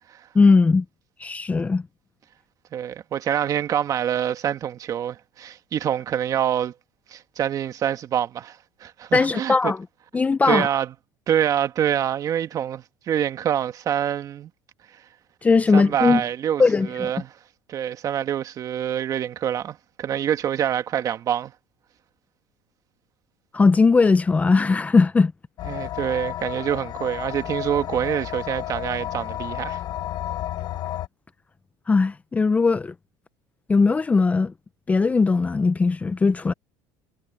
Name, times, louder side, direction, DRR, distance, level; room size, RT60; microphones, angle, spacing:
voice 1, 0.3-0.8 1.2-1.8 9.1-9.8 10.1-10.7 15.4-16.2 16.6-17.1 23.5-25.3 31.9-32.9 33.7-34.5 34.9-36.5, left 4 dB, 15° left, 0.7 m, -19 dB
voice 2, 2.7-6.7 7.1-9.7 10.5-10.9 11.3-14.5 15.7-17.3 17.7-21.5 25.6-29.8, right 10 dB, 40° right, 1.8 m, -26 dB
sound 1, 25.6-31.1, left 12 dB, 45° left, 1.1 m, -32 dB
cardioid pair, 135°, 9 cm